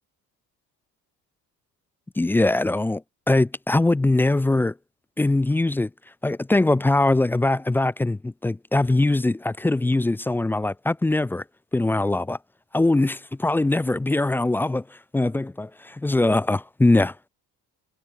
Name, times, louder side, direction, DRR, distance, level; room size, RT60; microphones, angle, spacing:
voice 1, 2.2-4.7 5.2-5.9 6.2-11.4 11.7-12.4 12.7-17.3, left 2 dB, 5° left, 0.4 m, -22 dB
figure-of-eight pair, 55°, 49 cm